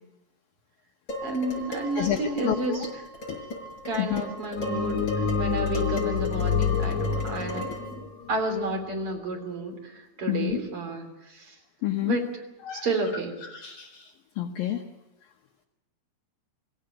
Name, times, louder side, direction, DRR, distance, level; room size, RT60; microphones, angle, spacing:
Dishes pots and pans, 1.1-8.0, equal, 20° left, 6.4 m, -37 dB
voice 1, 1.2-2.9 3.8-8.0 8.3-11.6 12.0-12.4 12.7-13.3, right 2 dB, 30° right, 4 dB, 3.4 m, -31 dB
voice 2, 2.0-2.8 3.3-3.5 4.0-4.2 10.3-10.6 11.8-12.2 12.7-12.9 13.4-14.8, left 12 dB, 85° left, 4 dB, 2.0 m, -29 dB
sound 1, 4.5-8.9, left 6 dB, 50° left, 2.2 m, -27 dB
25.0 x 16.0 x 8.7 m, 0.97 s
omnidirectional pair, 5.7 m